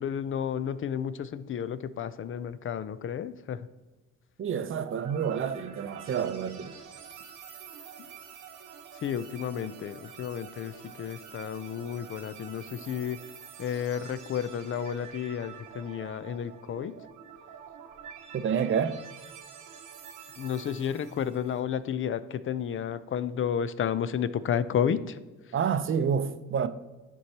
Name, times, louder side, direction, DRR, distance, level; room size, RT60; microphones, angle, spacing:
voice 1, 0.0-3.7 8.9-13.2 13.6-16.9 20.4-25.5, left 8 dB, 45° left, 0.4 m, -32 dB
voice 2, 4.4-6.7 18.3-19.0 25.5-26.7, right 7 dB, 45° right, 0.6 m, -28 dB
sound 1, 4.7-21.6, right 8 dB, 90° right, 1.0 m, -47 dB
11.5 x 4.6 x 2.8 m
cardioid pair, 90°, 30 cm